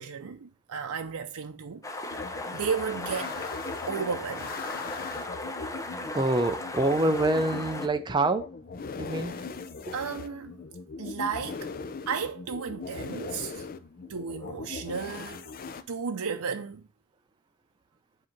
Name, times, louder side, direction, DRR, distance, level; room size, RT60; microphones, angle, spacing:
voice 1, 0.0-2.0 2.5-3.3 3.9-4.5 9.9-10.6 11.0-11.7 12.1-13.7 14.1-15.5 15.9-16.8, right 6 dB, 85° right, 0.5 m, -33 dB
sound 1, 1.8-7.9, left 2 dB, 15° left, 0.8 m, -37 dB
sound 2, 2.1-15.8, left 4 dB, 40° left, 0.5 m, -40 dB
voice 2, 6.1-8.5 9.0-9.3, right 2 dB, 20° right, 0.5 m, -26 dB
7.8 x 2.8 x 5.8 m
head